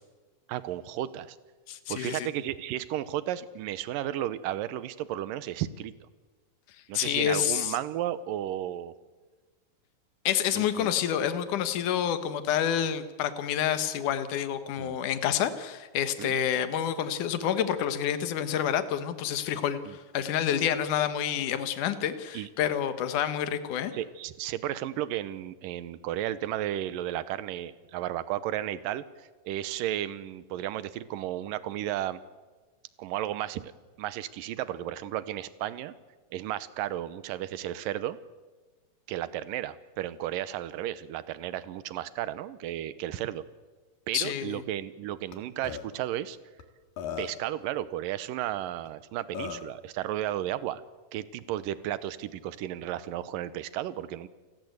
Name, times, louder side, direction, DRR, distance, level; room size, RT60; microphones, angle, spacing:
voice 1, 0.5-1.4 1.9-5.9 6.9-8.9 10.5-10.9 14.8-15.0 16.2-16.3 19.9-20.0 22.3-22.5 23.9-32.2 33.0-33.7 34.0-35.9 36.3-38.2 39.1-43.4 44.1-46.4 47.2-50.8 51.1-54.3, right 12 dB, 80° right, 15 dB, 2.6 m, -33 dB
voice 2, 1.7-2.3 6.9-7.7 10.2-23.9 44.1-44.6, left 9 dB, 65° left, 11 dB, 2.8 m, -28 dB
Burping eructation, 45.3-45.4 45.6-45.8 46.6-46.7 47.0-47.5 48.9-49.0 49.3-49.7, left 8 dB, 80° left, 3.6 m, -36 dB
29.0 x 19.5 x 8.1 m, 1.3 s
omnidirectional pair, 4.0 m